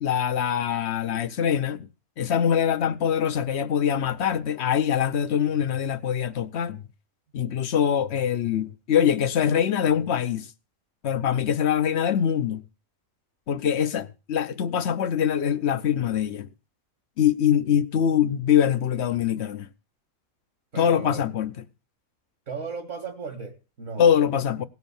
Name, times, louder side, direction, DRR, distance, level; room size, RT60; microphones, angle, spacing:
voice 1, 0.0-1.9 2.2-6.8 7.3-10.5 11.0-12.6 13.5-16.5 17.2-19.7 20.8-21.5 24.0-24.6, left 9 dB, 55° left, 1.0 m, -23 dB
voice 2, 20.7-21.3 22.5-24.4, right 4 dB, 55° right, 2.3 m, -36 dB
17.5 x 6.2 x 7.1 m
omnidirectional pair, 1.5 m